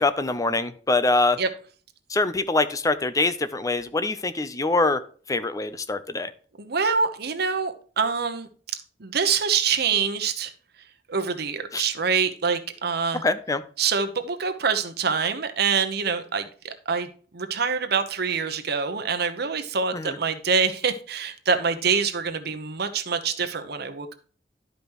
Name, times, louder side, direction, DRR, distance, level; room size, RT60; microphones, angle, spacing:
voice 1, 0.0-1.4 2.1-5.0 5.3-6.3 11.7-11.8 13.2-13.6 19.9-20.2, left 3 dB, 20° left, 11 dB, 0.6 m, -24 dB
voice 2, 6.6-8.5 9.0-10.5 11.1-13.2 13.8-24.1, right 5 dB, 60° right, 8 dB, 1.0 m, -25 dB
11.5 x 5.1 x 3.0 m, 0.43 s
head